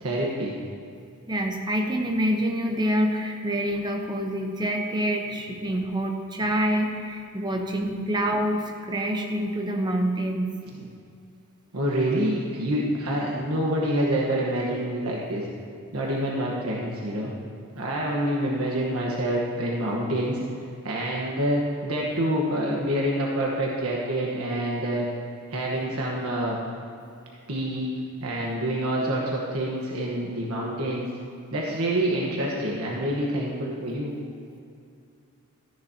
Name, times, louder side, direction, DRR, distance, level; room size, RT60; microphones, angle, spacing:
voice 1, 0.0-0.5 10.7-10.9 11.7-15.4 15.9-17.3 17.7-20.4 20.8-25.1 25.5-26.6 27.5-27.9 28.2-31.1 31.5-34.1, right 1 dB, 80° right, -3 dB, 1.3 m, -27 dB
voice 2, 1.3-10.5, equal, 20° right, 2 dB, 0.9 m, -26 dB
14.0 x 10.5 x 2.9 m, 2.5 s
head